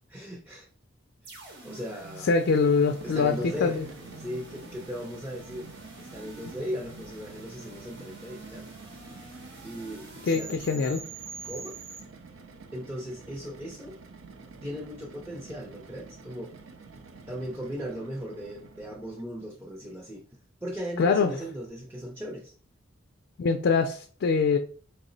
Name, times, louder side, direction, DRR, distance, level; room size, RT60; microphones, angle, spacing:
voice 1, 0.1-0.7 1.2-1.3 1.6-2.3 3.0-3.8 4.2-8.7 9.6-10.9 11.4-11.8 12.7-14.0 14.6-16.5 17.3-20.2 20.6-22.5, equal, 10° right, -2 dB, 0.5 m, -37 dB
sound 1, 1.2-12.0, right 2 dB, 60° right, 0.9 m, -46 dB
voice 2, 2.3-3.8 10.3-11.0 21.0-21.3 23.4-24.6, left 5 dB, 60° left, 5 dB, 0.3 m, -24 dB
sound 2, 2.8-19.3, right 4 dB, 90° right, 0.6 m, -48 dB
4.4 x 2.0 x 3.8 m, 0.43 s
head